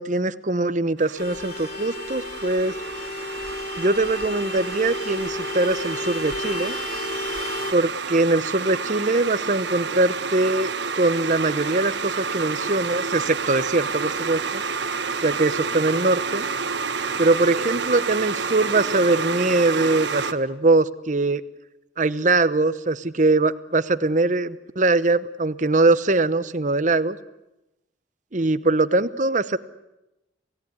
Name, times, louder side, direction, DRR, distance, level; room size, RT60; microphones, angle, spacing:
voice 1, 0.0-2.7 3.8-6.8 7.7-14.6 15.2-16.4 17.2-21.4 22.0-27.2 28.3-29.6, right 2 dB, 40° right, 14 dB, 0.9 m, -22 dB
sound 1, 1.0-20.3, right 5 dB, 75° right, 1.3 m, -29 dB
Vehicle horn car horn honking, 1.2-7.7, left 3 dB, 50° left, 1.3 m, -33 dB
29.0 x 17.0 x 9.7 m, 0.95 s
head